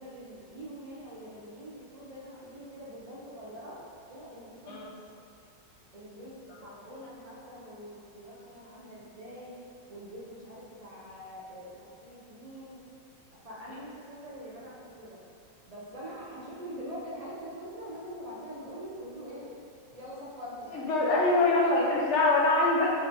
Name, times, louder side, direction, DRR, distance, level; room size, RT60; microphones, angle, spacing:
voice 1, 0.0-3.8 4.1-4.9 5.9-9.6 9.9-12.8 13.3-15.2 15.7-19.5 19.9-21.6, equal, 65° right, -7 dB, 0.3 m, -44 dB
voice 2, 20.7-23.0, left 2 dB, 50° left, -3 dB, 0.9 m, -24 dB
5.5 x 5.2 x 3.5 m, 2.4 s
omnidirectional pair, 2.0 m